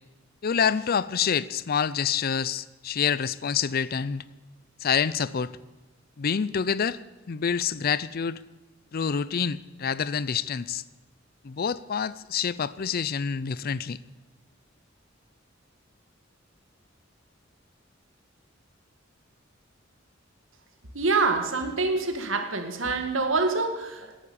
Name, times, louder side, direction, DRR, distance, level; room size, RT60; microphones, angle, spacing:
voice 1, 0.4-4.2 4.8-5.5 6.2-7.0 7.3-8.4 8.9-10.8 11.4-14.0, left 7 dB, 50° left, 18 dB, 0.5 m, -27 dB
voice 2, 20.9-24.1, right 3 dB, 80° right, 6 dB, 1.9 m, -26 dB
18.0 x 10.5 x 7.0 m, 1.1 s
head